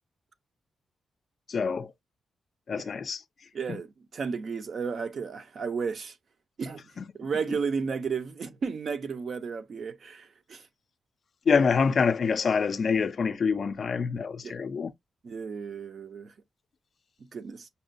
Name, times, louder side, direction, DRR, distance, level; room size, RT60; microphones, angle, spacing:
voice 1, 1.5-1.9 2.7-3.2 3.7-3.8 7.0-7.1 11.5-14.9, left 5 dB, 45° left, 0.3 m, -26 dB
voice 2, 3.5-6.1 6.6-6.8 7.1-10.7 14.4-14.5 15.2-16.3 17.3-17.7, right 5 dB, 50° right, 0.5 m, -33 dB
5.4 x 2.2 x 2.5 m
wide cardioid pair, 155°, 0 cm